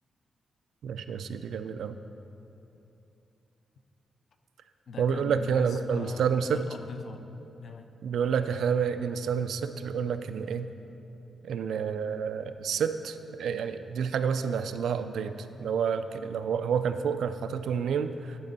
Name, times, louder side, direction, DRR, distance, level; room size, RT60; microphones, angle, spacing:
voice 1, 0.8-2.0 5.0-6.6 8.0-10.7 11.4-15.3 15.6-18.4, right 7 dB, 75° right, 10 dB, 0.3 m, -29 dB
voice 2, 4.9-7.9, left 4 dB, 50° left, 7 dB, 0.4 m, -41 dB
11.0 x 5.2 x 4.0 m, 2.9 s
wide cardioid pair, 180°, 0 cm